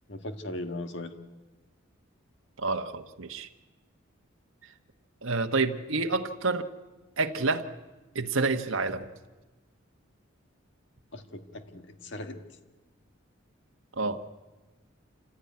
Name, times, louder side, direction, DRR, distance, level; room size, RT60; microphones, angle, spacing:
voice 1, 0.1-1.1 11.1-12.4, left 1 dB, 60° left, 7 dB, 1.7 m, -38 dB
voice 2, 2.6-3.5 5.2-6.7 7.2-7.7 8.1-9.1 14.0-14.2, right 3 dB, 80° right, 6 dB, 1.2 m, -28 dB
28.0 x 15.5 x 9.5 m, 1.2 s
head